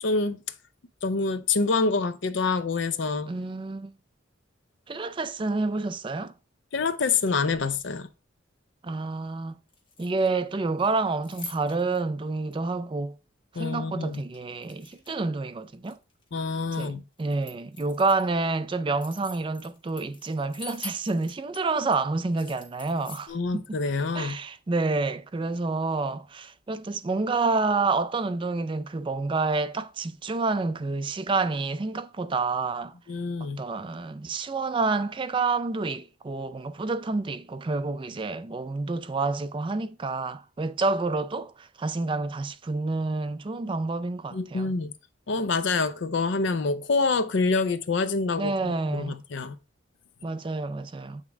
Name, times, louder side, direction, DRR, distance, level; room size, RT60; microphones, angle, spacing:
voice 1, 0.0-0.4 1.0-3.3 6.7-8.1 13.6-14.2 16.3-17.0 23.3-24.4 33.1-33.6 44.3-44.9 45.3-49.6, left 4 dB, 65° left, 0.6 m, -26 dB
voice 2, 3.3-3.9 4.9-6.3 8.8-9.5 10.0-13.1 13.5-16.0 16.8-23.6 24.1-32.9 33.6-44.7 48.4-49.2 50.2-51.2, right 3 dB, 25° right, 0.3 m, -28 dB
sound 1, 7.1-7.8 9.7-10.5 10.8-12.0 12.5-12.6 14.0-15.3 15.6-16.9 17.2-18.3 18.7-21.6 21.9-22.0 22.3-23.3, left 3 dB, 25° left, 1.1 m, -45 dB
8.1 x 3.6 x 3.4 m
head